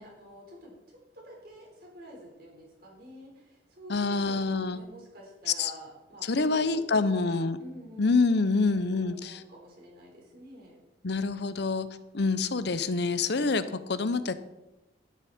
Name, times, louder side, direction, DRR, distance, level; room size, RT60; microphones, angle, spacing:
voice 1, 0.0-8.3 8.9-10.8, equal, 50° right, -1 dB, 4.3 m, -48 dB
voice 2, 3.9-4.8 5.6-5.7 6.2-7.6 8.0-9.4 11.0-11.9 12.1-14.3, left 3 dB, 60° left, 13 dB, 0.7 m, -26 dB
13.0 x 11.0 x 4.3 m, 0.98 s
head